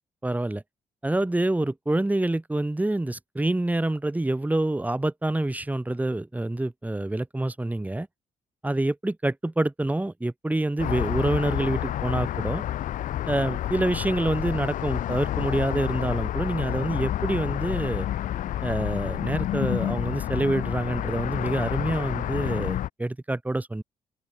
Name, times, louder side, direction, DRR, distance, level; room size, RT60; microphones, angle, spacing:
voice 1, 0.2-0.6 1.0-8.1 8.6-12.6 13.3-18.1 18.6-23.8, right 1 dB, 10° right, 3.3 m, -27 dB
sound 1, 10.8-22.9, left 12 dB, 75° left, 1.8 m, -29 dB
open air
cardioid pair, 90°, 13 cm